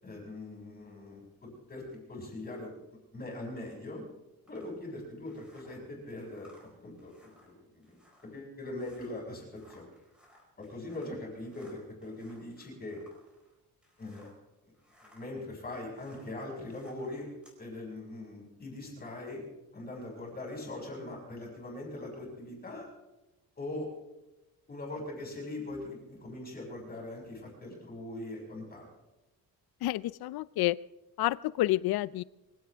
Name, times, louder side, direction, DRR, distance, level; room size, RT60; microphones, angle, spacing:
voice 1, 0.0-2.7 3.1-4.0 4.5-6.5 6.8-8.0 8.3-9.9 10.6-13.0 14.0-14.3 15.0-17.3 17.6-19.4 19.7-22.9 23.6-23.9 24.7-28.9, left 2 dB, 25° left, -1 dB, 6.2 m, -41 dB
sound 1, 4.5-14.5 14.7-17.6, equal, 5° right, 4.7 m, -63 dB
voice 2, 29.8-30.8 31.2-32.2, left 16 dB, 75° left, 19 dB, 0.5 m, -29 dB
24.0 x 16.5 x 3.5 m, 1.0 s
cardioid pair, 170°, 37 cm